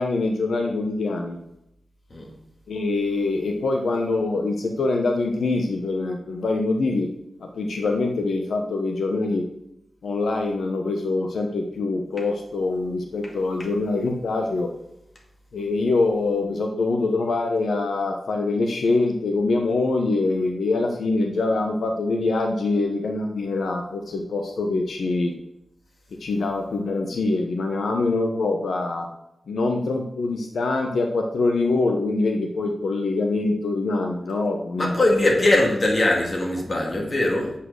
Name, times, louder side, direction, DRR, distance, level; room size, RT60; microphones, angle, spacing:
voice 1, 0.0-1.4 2.7-7.1 7.4-9.4 10.0-14.7 15.5-25.3 26.2-29.1 29.5-35.1, left 3 dB, 85° left, 3 dB, 0.9 m, -24 dB
voice 2, 34.8-37.5, left 1 dB, 35° left, 0 dB, 2.3 m, -21 dB
8.0 x 5.8 x 6.3 m, 0.84 s
wide cardioid pair, 125°, 0 cm